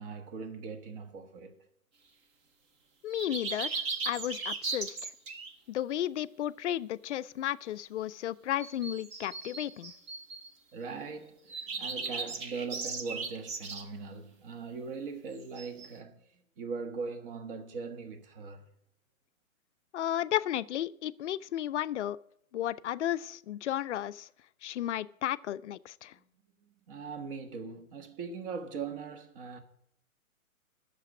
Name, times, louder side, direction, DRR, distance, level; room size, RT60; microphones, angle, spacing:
voice 1, 0.0-1.6 10.7-16.2 16.6-18.7 26.1-26.2 26.9-29.6, right 5 dB, 40° right, 1.4 m, -40 dB
voice 2, 3.0-5.1 5.7-9.9 19.9-22.2 22.5-24.3 24.6-26.1, left 12 dB, 55° left, 0.5 m, -33 dB
sound 1, 3.1-5.5 8.6-10.5 11.5-13.8 15.6-15.9, right 4 dB, 20° right, 0.6 m, -37 dB
9.3 x 6.8 x 8.0 m
hypercardioid pair, 145°, 42 cm